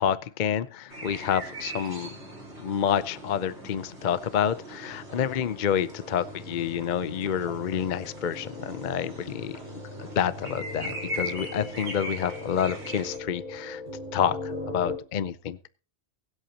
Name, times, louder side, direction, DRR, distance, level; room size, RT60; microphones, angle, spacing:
voice 1, 0.0-2.1 2.6-9.6 10.0-13.8 14.1-15.6, left 8 dB, 50° left, 0.7 m, -28 dB
sound 1, 0.9-13.2, right 1 dB, 75° right, 4.6 m, -40 dB
sound 2, 1.9-15.0, left 2 dB, 45° right, 5.3 m, -41 dB
24.0 x 8.2 x 2.9 m
omnidirectional pair, 1.1 m